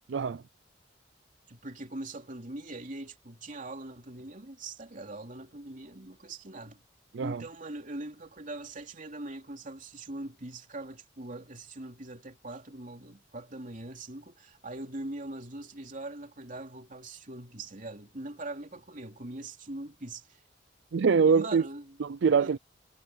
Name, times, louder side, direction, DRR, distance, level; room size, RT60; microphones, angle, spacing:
voice 1, 0.1-0.4 7.1-7.4 20.9-21.6 22.0-22.6, right 5 dB, 65° right, 0.4 m, -24 dB
voice 2, 1.5-6.8 7.2-20.4 21.2-22.0 22.4-22.6, right 2 dB, 45° right, 3.0 m, -42 dB
head